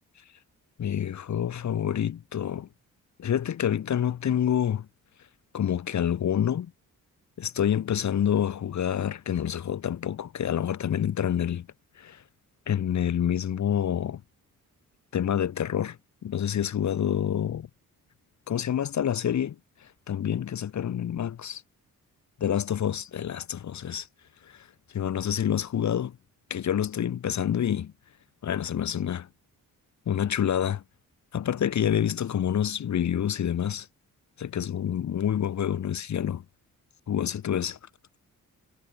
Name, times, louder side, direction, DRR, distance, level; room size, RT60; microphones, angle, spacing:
voice 1, 0.8-2.7 3.2-4.9 5.5-6.7 7.4-11.7 12.0-12.2 12.7-14.2 15.1-16.0 16.2-17.7 18.5-19.5 19.8-21.6 22.4-24.1 24.4-24.7 24.9-26.2 26.5-27.9 28.4-29.3 30.1-30.8 31.3-33.9 34.4-36.4 37.1-37.8, left 9 dB, 50° left, 1.1 m, -27 dB
wide cardioid pair, 150°, 35 cm